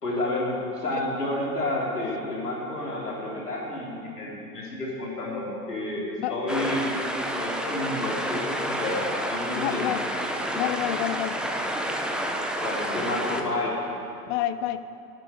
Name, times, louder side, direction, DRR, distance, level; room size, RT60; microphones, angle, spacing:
voice 1, 0.0-6.9 7.2-9.9 12.6-13.8, left 1 dB, 85° left, -4 dB, 3.7 m, -30 dB
sound 1, 6.5-13.4, right 1 dB, ahead, 1.0 m, -30 dB
voice 2, 9.6-10.0 10.5-11.4 14.3-14.8, left 13 dB, 35° left, 13 dB, 0.4 m, -28 dB
11.5 x 11.0 x 7.6 m, 2.7 s
figure-of-eight pair, 90°, 46 cm